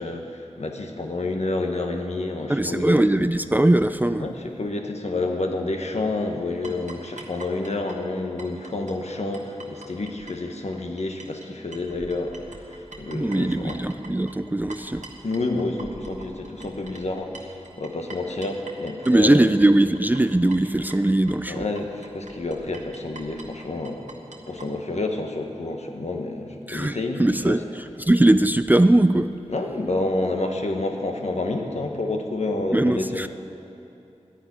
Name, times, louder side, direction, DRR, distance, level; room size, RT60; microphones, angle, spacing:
voice 1, 0.0-3.0 4.2-13.8 15.2-19.4 21.5-24.1 24.5-27.6 29.5-33.3, left 2 dB, 70° left, 3 dB, 1.4 m, -29 dB
voice 2, 2.5-4.3 13.1-15.0 19.1-21.7 26.7-29.3 32.7-33.3, right 1 dB, 15° right, 11 dB, 0.4 m, -20 dB
sound 1, 6.6-11.5 11.7-24.7, right 3 dB, 90° right, 1.4 m, -44 dB
11.0 x 10.0 x 9.6 m, 2.7 s
wide cardioid pair, 80°, 12 cm